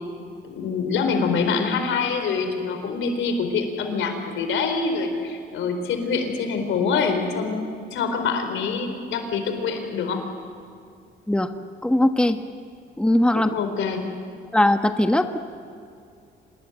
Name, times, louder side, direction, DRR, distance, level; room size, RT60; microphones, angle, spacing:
voice 1, 0.4-7.7 7.9-10.2 13.3-14.1, left 5 dB, 80° left, 6 dB, 4.3 m, -25 dB
voice 2, 11.8-12.4 13.0-13.5 14.5-15.4, left 1 dB, 5° left, 7 dB, 1.3 m, -19 dB
26.5 x 20.5 x 9.2 m, 2.3 s
cardioid pair, 90°, 20 cm